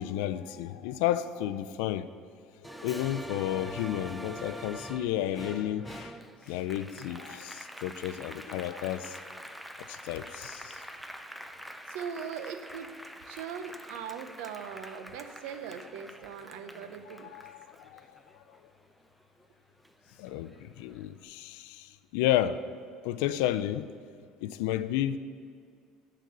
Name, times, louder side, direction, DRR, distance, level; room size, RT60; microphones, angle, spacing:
voice 1, 0.0-2.1 2.8-6.2 6.5-9.2 9.9-10.8 17.3-18.1 18.3-18.6 20.2-22.6 23.0-23.9 24.4-25.2, left 12 dB, 85° left, 0.3 m, -32 dB
Applause, 2.6-19.5 19.9-21.0, equal, ahead, 0.3 m, -45 dB
voice 2, 11.9-12.9 13.2-17.3, right 7 dB, 80° right, 0.6 m, -40 dB
9.3 x 3.9 x 6.7 m
cardioid pair, 150°, 0 cm